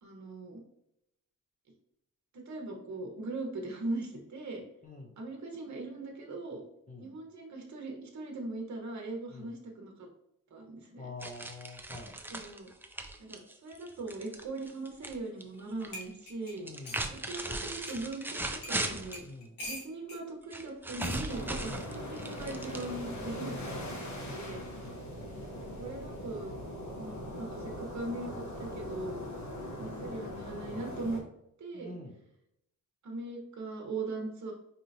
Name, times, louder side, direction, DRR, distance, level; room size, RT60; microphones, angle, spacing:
voice 1, 0.0-0.6 2.3-4.6 5.2-6.6 7.0-10.1 10.5-11.1 12.3-12.7 13.2-16.7 17.1-19.2 19.6-23.7 24.0-24.6 25.8-26.5 27.0-29.2 29.8-31.2 31.6-32.0 33.0-34.5, right 2 dB, 55° right, 1 dB, 1.1 m, -40 dB
voice 2, 11.0-12.2 16.6-17.0 19.2-19.6 21.6-21.8 23.2-25.5 29.8-30.1 31.7-32.2, left 2 dB, 25° left, 1 dB, 0.6 m, -47 dB
sound 1, 11.2-15.2 15.4-16.0 16.6-19.3 20.5-23.2, right 2 dB, 5° right, 0.3 m, -38 dB
sound 2, 15.5-15.6 15.9-17.1 17.9-18.0 18.6-18.8 19.1-20.2 21.0-21.2 22.3-22.6, left 1 dB, 90° left, 1.1 m, -44 dB
sound 3, 21.3-31.2, equal, 55° left, 1.0 m, -41 dB
5.0 x 2.9 x 2.7 m, 0.79 s
wide cardioid pair, 120°, 33 cm